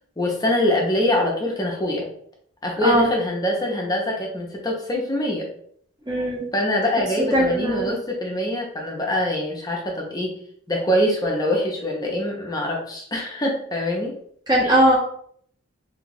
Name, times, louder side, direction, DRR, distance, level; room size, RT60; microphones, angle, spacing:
voice 1, 0.2-2.1 2.6-5.5 6.5-10.4 10.7-14.2 14.6-14.8, left 1 dB, 20° left, -1 dB, 0.6 m, -24 dB
voice 2, 6.1-6.5 7.3-7.9 14.5-15.0, right 1 dB, 20° right, -3 dB, 0.8 m, -19 dB
2.7 x 2.3 x 3.9 m, 0.64 s
head